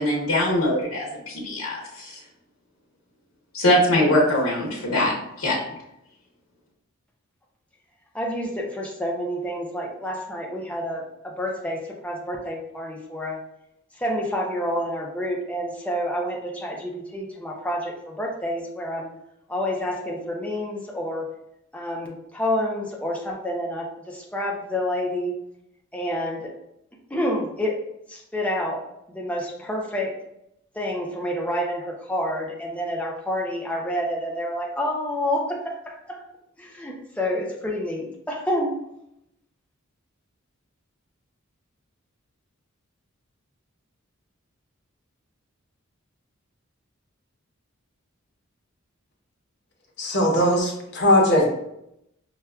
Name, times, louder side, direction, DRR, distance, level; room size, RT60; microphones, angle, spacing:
voice 1, 0.0-2.2 3.5-5.6, left 1 dB, 85° left, -5 dB, 1.0 m, -22 dB
voice 2, 8.1-13.4 14.0-19.1 19.5-21.3 21.7-25.3 25.9-26.5 27.1-27.8 28.1-28.8 29.1-30.2 30.7-36.2 36.6-38.7, equal, 5° left, -2 dB, 0.5 m, -28 dB
voice 3, 50.0-51.5, left 1 dB, 55° left, -1 dB, 0.8 m, -19 dB
5.7 x 2.3 x 2.3 m, 0.80 s
head